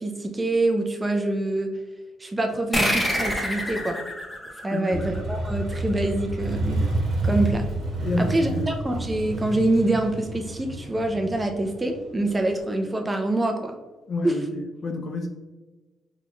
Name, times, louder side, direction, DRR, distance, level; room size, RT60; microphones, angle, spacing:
voice 1, 0.0-1.7 2.2-4.0 4.6-6.8 7.2-7.6 8.2-13.7 14.2-14.3, right 2 dB, 20° right, 4 dB, 0.4 m, -25 dB
sound 1, 2.7-5.8, equal, 10° left, 0.8 m, -27 dB
voice 2, 4.7-5.1 8.0-8.8 14.1-15.3, left 2 dB, 45° left, 4 dB, 0.5 m, -29 dB
Motorcycle, 4.9-12.6, right 2 dB, 65° right, 1.0 m, -29 dB
4.0 x 3.0 x 2.3 m, 1.2 s
cardioid pair, 90°, 0 cm